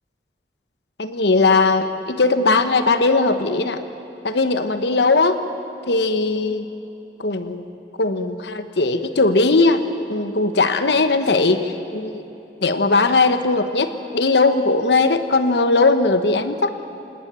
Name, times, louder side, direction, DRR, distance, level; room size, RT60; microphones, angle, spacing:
voice 1, 1.0-3.8 4.2-5.4 5.9-6.6 7.2-7.7 8.0-9.8 10.1-12.2 12.6-16.7, left 3 dB, 75° left, 10 dB, 1.1 m, -18 dB
27.5 x 19.5 x 8.9 m, 2.9 s
head